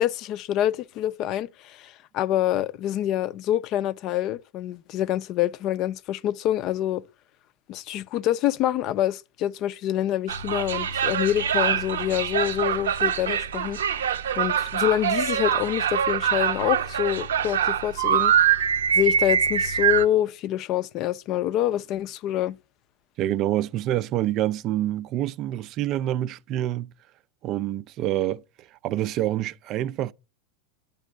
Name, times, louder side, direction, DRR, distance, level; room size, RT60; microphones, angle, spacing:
voice 1, 0.0-7.0 7.7-13.8 14.4-18.3 18.9-22.6, left 12 dB, 45° left, 0.5 m, -26 dB
sound 1, 10.3-20.1, right 8 dB, 90° right, 0.7 m, -24 dB
voice 2, 23.2-26.9 27.4-28.4 28.8-30.1, right 13 dB, 45° right, 0.4 m, -26 dB
9.2 x 5.3 x 6.4 m
hypercardioid pair, 115°, 0 cm